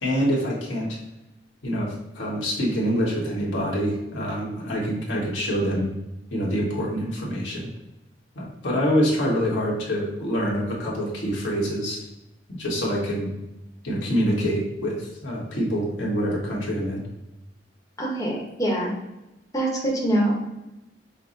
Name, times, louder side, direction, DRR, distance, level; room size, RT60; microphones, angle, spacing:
voice 1, 0.0-1.0 1.6-5.9 6.3-7.7 8.3-12.0 12.5-13.3 13.8-17.0, equal, 85° left, -4 dB, 1.3 m, -26 dB
voice 2, 18.0-18.9 19.5-20.5, right 1 dB, 20° left, -3 dB, 0.9 m, -24 dB
5.6 x 2.0 x 3.8 m, 0.97 s
head